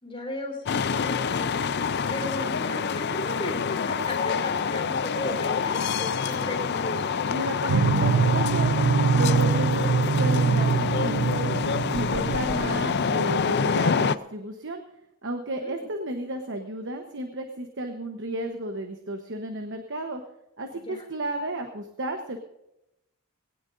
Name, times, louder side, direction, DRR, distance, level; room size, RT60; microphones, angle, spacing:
voice 1, 0.0-1.6 2.1-7.1 15.6-15.9 20.7-21.0, left 1 dB, 25° left, 0 dB, 3.6 m, -35 dB
sound 1, 0.7-14.2, left 6 dB, 50° left, 0.5 m, -27 dB
voice 2, 7.3-8.8 9.1-11.6 11.9-14.8 15.2-20.2 20.6-22.4, right 1 dB, 55° right, 5 dB, 1.1 m, -33 dB
sound 2, 7.7-13.6, right 5 dB, 85° right, 0.7 m, -24 dB
20.5 x 17.5 x 2.7 m, 0.87 s
head